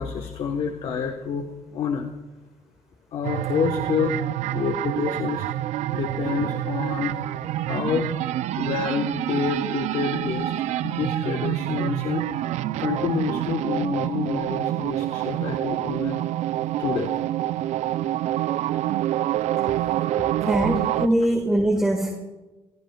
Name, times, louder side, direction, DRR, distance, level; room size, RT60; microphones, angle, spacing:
voice 1, 0.0-2.1 3.1-4.2 4.5-5.5 5.9-7.3 7.7-8.1 8.6-10.5 10.8-12.3 12.8-16.2 16.8-17.1, left 6 dB, 60° left, 4 dB, 1.1 m, -28 dB
sound 1, 3.2-21.1, right 13 dB, 85° right, 0.4 m, -27 dB
voice 2, 20.5-22.1, right 1 dB, 5° right, 2 dB, 1.4 m, -22 dB
26.0 x 17.0 x 2.3 m, 1.1 s
cardioid pair, 165°, 11 cm